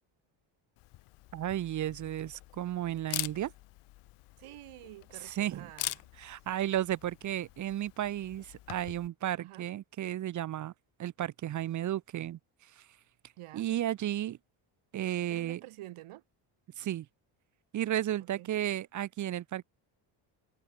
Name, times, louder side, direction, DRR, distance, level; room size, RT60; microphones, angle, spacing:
Camera, 0.8-9.1, left 19 dB, 90° left, 1.7 m, -44 dB
voice 1, 1.3-3.5 5.2-5.7 6.2-10.7 11.0-12.4 12.8-12.9 13.5-14.4 14.9-15.6 16.8-17.1 17.7-19.6, right 12 dB, 40° right, 0.5 m, -33 dB
voice 2, 4.4-6.1 9.4-9.7 13.4-13.7 15.3-16.2 18.2-18.5, right 16 dB, 80° right, 4.7 m, -49 dB
cardioid pair, 145°, 50 cm